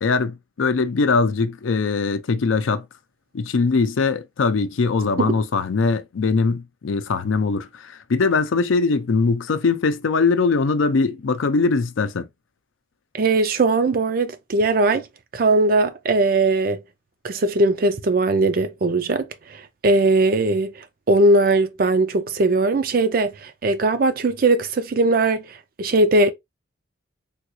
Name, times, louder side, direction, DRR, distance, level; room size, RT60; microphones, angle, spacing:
voice 1, 0.0-2.9 3.3-12.3, left 4 dB, 85° left, 0.5 m, -21 dB
voice 2, 13.1-15.1 15.3-16.8 17.2-26.3, right 2 dB, 45° right, 0.4 m, -20 dB
3.5 x 2.4 x 2.8 m
head